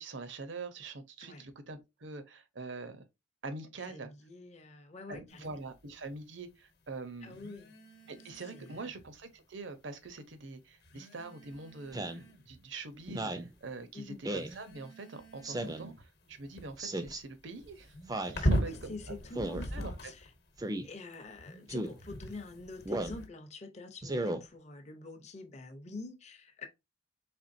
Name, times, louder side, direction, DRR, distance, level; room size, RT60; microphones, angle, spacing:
voice 1, 0.0-3.0 3.4-4.1 5.1-7.4 8.1-18.0 18.3-19.2 19.7-19.9, right 3 dB, 65° right, 0.7 m, -44 dB
voice 2, 3.9-5.6 7.2-7.7 8.5-8.9 13.9-14.2 18.4-20.2 20.8-26.7, left 3 dB, 35° left, 0.6 m, -46 dB
sound 1, 5.3-5.5 7.3-9.1 10.1-10.2 10.8-12.6 13.1-13.6 14.3-20.4 21.1-23.3, equal, 50° left, 1.0 m, -39 dB
Speech synthesizer, 11.9-12.2 13.1-13.5 14.2-14.5 15.4-15.9 16.8-17.2 18.1-18.4 19.3-19.7 20.6-20.9 21.7-22.0 22.9-23.2 24.0-24.4, right 1 dB, 20° right, 0.4 m, -35 dB
4.3 x 3.4 x 2.6 m
head